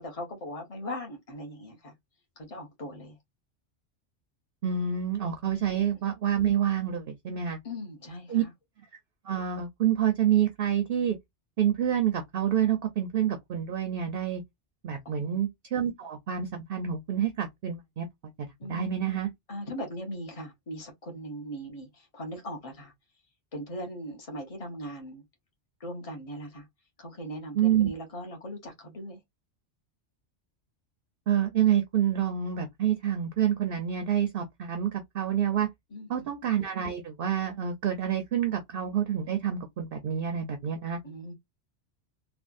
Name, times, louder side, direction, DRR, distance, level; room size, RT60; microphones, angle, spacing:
voice 1, 0.0-1.9 2.4-3.2 7.6-8.5 15.0-15.4 18.6-19.1 19.5-22.9 23.5-25.2 25.8-26.7 27.0-29.2 35.9-36.3 41.0-41.3, equal, 30° left, 1.2 m, -39 dB
voice 2, 4.6-7.6 8.3-8.4 9.2-11.2 11.6-14.4 14.8-18.1 18.4-19.3 27.6-27.9 31.3-35.7 36.1-41.0, right 9 dB, 55° right, 0.8 m, -27 dB
3.4 x 2.3 x 2.4 m
omnidirectional pair, 1.2 m